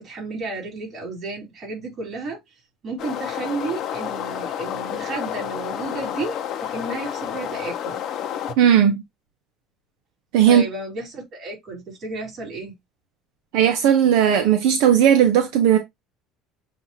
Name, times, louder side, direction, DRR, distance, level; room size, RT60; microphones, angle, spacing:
voice 1, 0.0-2.4 2.8-8.0 10.5-12.7, right 3 dB, 35° right, 3.3 m, -32 dB
sound 1, 3.0-8.5, left 10 dB, 45° left, 0.7 m, -30 dB
voice 2, 8.6-9.0 10.3-10.6 13.5-15.8, right 9 dB, 75° right, 0.8 m, -16 dB
7.5 x 2.6 x 2.7 m
cardioid pair, 160°, 0 cm